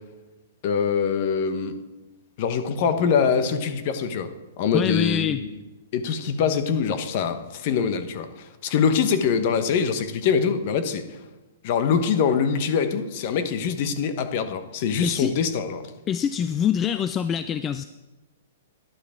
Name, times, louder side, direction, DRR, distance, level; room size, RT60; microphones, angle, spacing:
voice 1, 0.6-1.8 2.4-4.3 4.6-5.5 5.9-11.2 11.6-15.9, left 6 dB, 45° left, 9 dB, 1.1 m, -24 dB
voice 2, 4.7-5.4 15.0-15.3 16.1-17.8, left 8 dB, 20° left, 11 dB, 0.3 m, -25 dB
11.5 x 11.5 x 3.7 m, 1.1 s
hypercardioid pair, 145°, 0 cm